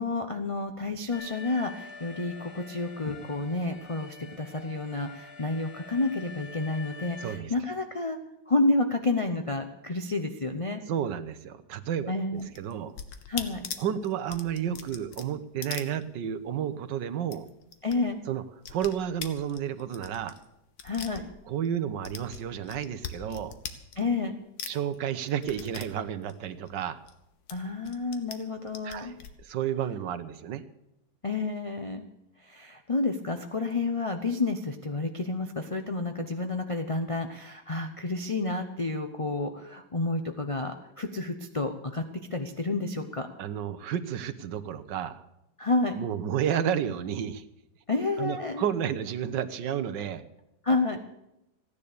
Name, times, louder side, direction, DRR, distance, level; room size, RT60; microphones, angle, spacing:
voice 1, 0.0-8.2 8.5-10.8 12.1-12.5 13.3-13.6 17.8-18.2 20.8-21.3 24.0-24.3 27.5-29.1 31.2-32.0 32.4-42.0 42.3-43.3 45.6-46.0 47.9-48.6 50.6-51.0, left 3 dB, 30° left, 6 dB, 0.6 m, -30 dB
Alarm, 1.1-7.4, left 4 dB, 55° left, 1.9 m, -46 dB
voice 2, 7.2-7.5 10.9-12.9 13.8-17.5 18.3-18.4 18.7-20.3 21.5-23.6 24.7-27.0 28.8-29.1 29.4-30.6 43.4-45.2 45.9-47.4 48.2-50.2, right 9 dB, 75° right, 11 dB, 1.5 m, -31 dB
sound 1, 12.4-16.6 16.8-16.9 17.2-18.0 18.2-21.7 22.0-24.3 24.6-27.2 27.5-28.4 28.7-29.3, left 7 dB, 80° left, 1.8 m, -41 dB
15.5 x 10.5 x 6.8 m, 0.86 s
omnidirectional pair, 2.0 m